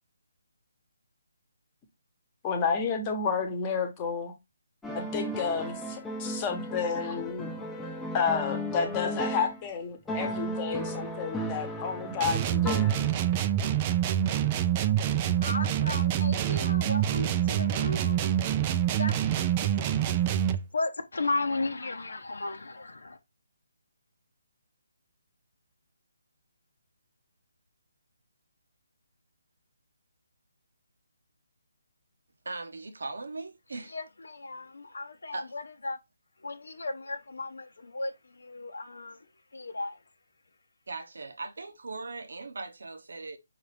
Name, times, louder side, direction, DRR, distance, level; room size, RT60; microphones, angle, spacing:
voice 1, 2.4-4.3 4.9-7.6 8.1-13.0, left 5 dB, 25° left, 1.1 m, -31 dB
sound 1, 4.8-9.7 10.1-13.4, equal, 5° left, 0.7 m, -35 dB
sound 2, 12.2-20.7, right 11 dB, 25° right, 0.4 m, -26 dB
voice 2, 15.4-18.3 18.9-19.1 20.7-23.2 33.9-36.0 36.4-40.0, left 3 dB, 75° left, 0.7 m, -35 dB
voice 3, 32.4-33.9 35.3-35.5 40.9-43.4, right 3 dB, 70° right, 0.9 m, -39 dB
5.8 x 2.8 x 3.3 m
figure-of-eight pair, 150°, 0 cm